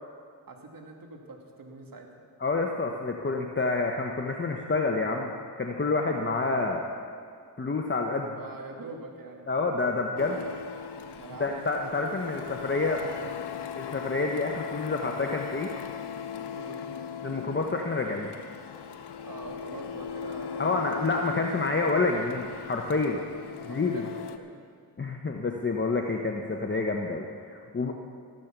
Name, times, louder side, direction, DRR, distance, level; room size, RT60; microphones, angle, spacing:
voice 1, 0.5-2.3 8.3-9.7 11.1-11.5 12.3-12.4 16.5-16.8 19.2-20.8 23.0-23.3 23.6-24.5 27.8-27.9, right 3 dB, 55° right, 2 dB, 2.3 m, -44 dB
voice 2, 2.4-5.3 5.6-6.8 7.6-8.3 9.5-10.4 11.4-13.0 13.8-15.7 17.2-18.4 20.6-23.2 23.7-24.1 25.0-27.9, left 3 dB, 25° left, 2 dB, 1.1 m, -28 dB
Printer, 10.2-24.4, left 7 dB, 70° left, 0.9 m, -38 dB
14.0 x 12.0 x 6.0 m, 2.2 s
cardioid pair, 55°, 42 cm